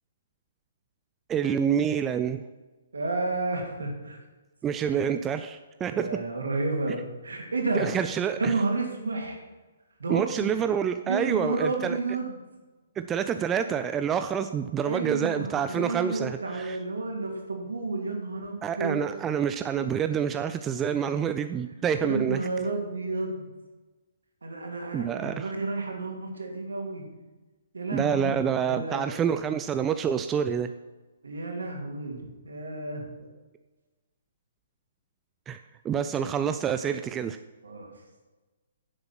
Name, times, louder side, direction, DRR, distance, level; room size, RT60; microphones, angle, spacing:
voice 1, 1.3-2.4 4.6-6.2 7.7-8.5 10.1-12.0 13.0-16.8 18.6-22.4 24.9-25.5 27.9-30.7 35.5-35.6 35.8-37.4, right 8 dB, 15° right, 9 dB, 0.4 m, -27 dB
voice 2, 2.9-4.2 5.9-7.9 8.4-9.4 10.0-10.5 11.0-12.4 14.8-19.1 21.9-23.5 24.4-27.0 27.7-29.1 31.2-33.3 37.6-37.9, right 3 dB, 65° right, 1 dB, 2.8 m, -31 dB
10.5 x 7.8 x 5.9 m, 1.2 s
figure-of-eight pair, 125°, 0 cm